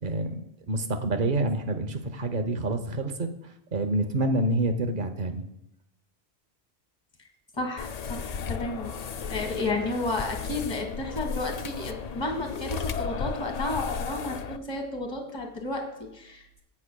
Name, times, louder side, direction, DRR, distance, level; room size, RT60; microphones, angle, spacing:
voice 1, 0.0-5.5, right 2 dB, 50° right, 7 dB, 1.0 m, -28 dB
voice 2, 7.5-9.0 9.3-16.6, left 2 dB, 25° left, 2 dB, 1.6 m, -32 dB
sound 1, 7.8-14.6, left 6 dB, 55° left, 0.5 m, -34 dB
16.5 x 8.5 x 2.3 m, 0.82 s
omnidirectional pair, 1.1 m